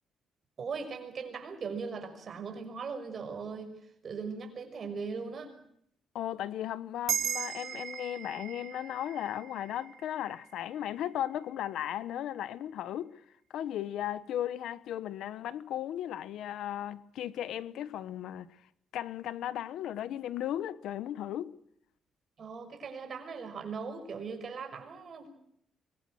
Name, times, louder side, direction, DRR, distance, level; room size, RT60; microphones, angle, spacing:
voice 1, 0.6-5.5 22.4-25.3, right 5 dB, 40° right, 5.9 m, -39 dB
voice 2, 6.1-13.1 13.5-18.5 18.9-21.5, left 11 dB, 85° left, 1.1 m, -36 dB
sound 1, 7.1-11.8, right 8 dB, 55° right, 3.0 m, -38 dB
25.0 x 22.0 x 6.4 m
cardioid pair, 150°, 0 cm